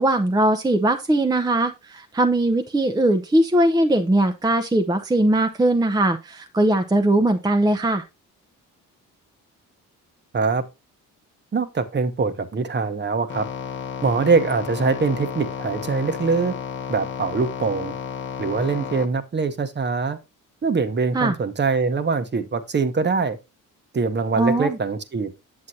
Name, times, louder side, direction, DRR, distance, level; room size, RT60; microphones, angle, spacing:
voice 1, 0.0-8.0 21.1-21.3 24.4-24.8, right 1 dB, 10° right, 0.6 m, -20 dB
voice 2, 11.5-13.5 14.0-16.5 16.9-17.9 18.4-20.2 20.6-23.4 23.9-25.3, right 4 dB, 35° right, 1.0 m, -23 dB
sound 1, 13.3-19.1, left 7 dB, 35° left, 0.8 m, -32 dB
7.8 x 7.2 x 2.7 m
cardioid pair, 80°, 32 cm